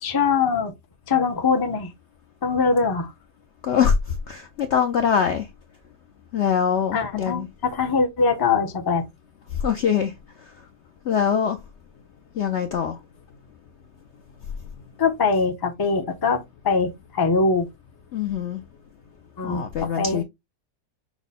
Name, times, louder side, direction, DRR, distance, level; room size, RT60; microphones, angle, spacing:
voice 1, 0.0-0.7 1.1-1.9 2.4-3.1 6.9-9.0 15.0-17.7 19.4-20.2, left 4 dB, 25° left, 0.5 m, -22 dB
voice 2, 3.6-3.9 4.3-5.5 6.3-7.5 9.6-10.1 11.1-11.6 12.4-13.0 18.1-18.6 19.4-20.2, left 7 dB, 65° left, 0.7 m, -23 dB
5.9 x 2.1 x 4.1 m
omnidirectional pair, 1.7 m